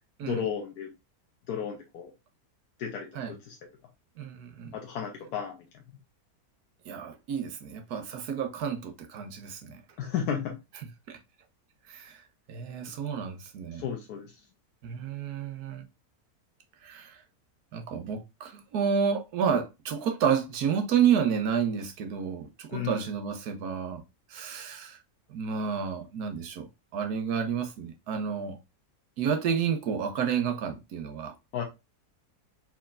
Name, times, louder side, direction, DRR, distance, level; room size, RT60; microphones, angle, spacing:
voice 1, 0.2-0.9 1.5-2.1 2.8-3.6 4.7-5.6 10.0-10.6 13.8-14.3 22.7-23.0 31.5-31.6, left 8 dB, 85° left, 1.3 m, -33 dB
voice 2, 4.2-4.7 6.9-9.8 11.1-11.2 11.9-12.2 12.5-13.9 14.8-15.9 16.8-17.2 17.7-24.0 24.3-25.0 25.3-26.7 26.9-28.6 29.2-31.3, right 7 dB, 90° right, 1.3 m, -30 dB
4.4 x 4.3 x 2.4 m
omnidirectional pair, 1.6 m